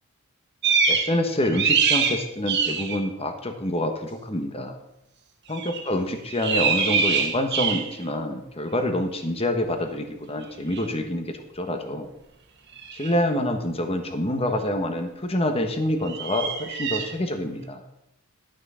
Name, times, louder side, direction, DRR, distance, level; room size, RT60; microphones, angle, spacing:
sound 1, 0.6-1.2 1.4-3.0 5.5-5.9 6.3-8.0 10.7-10.8 12.8-13.2 16.1-17.1, right 5 dB, 55° right, 1.5 m, -24 dB
voice 1, 0.9-4.7 5.5-12.1 12.9-17.8, left 1 dB, 25° left, 6 dB, 1.3 m, -27 dB
12.0 x 6.4 x 6.3 m, 0.82 s
head